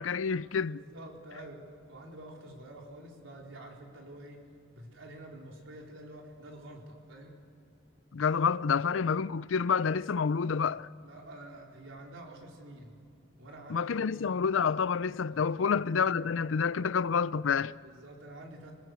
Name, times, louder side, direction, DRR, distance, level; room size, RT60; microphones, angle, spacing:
voice 1, 0.0-0.8 8.1-10.9 13.7-17.7, left 6 dB, 80° left, 0.5 m, -28 dB
voice 2, 0.6-4.4 4.7-7.4 10.6-13.0 13.4-14.2 15.2-15.7 17.8-18.7, right 1 dB, 80° right, 4.2 m, -48 dB
27.5 x 20.0 x 8.2 m
head